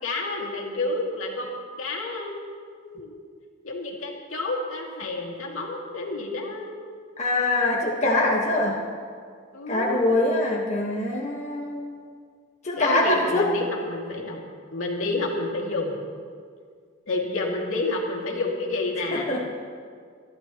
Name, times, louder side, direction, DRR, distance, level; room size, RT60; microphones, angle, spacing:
voice 1, 0.0-2.4 2.8-3.2 3.6-6.7 9.5-10.0 12.8-14.4 14.7-16.0 17.1-19.3, left 2 dB, 80° left, -2 dB, 2.5 m, -29 dB
voice 2, 7.2-8.8 9.7-12.0 12.6-13.5 19.1-19.5, left 2 dB, 35° left, -3 dB, 1.4 m, -24 dB
28.5 x 11.5 x 3.0 m, 2.1 s
head